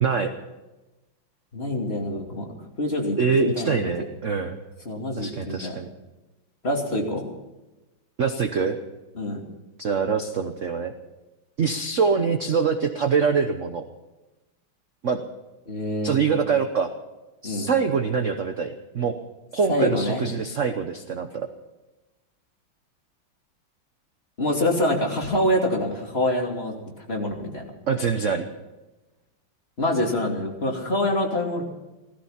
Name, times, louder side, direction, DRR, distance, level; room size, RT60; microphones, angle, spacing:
voice 1, 0.0-0.3 3.2-4.6 5.2-5.9 8.2-8.8 9.8-10.9 11.6-13.8 15.0-15.2 16.0-16.9 17.4-19.1 19.5-21.5 27.9-28.5, right 5 dB, 50° right, 7 dB, 1.0 m, -24 dB
voice 2, 1.5-3.8 4.8-5.8 6.6-7.2 9.1-9.4 15.7-16.4 17.4-17.7 19.7-20.2 24.4-26.8 27.1-27.7 29.8-31.6, left 1 dB, 30° left, 0 dB, 2.9 m, -26 dB
17.0 x 14.5 x 5.8 m, 1.1 s
omnidirectional pair, 2.2 m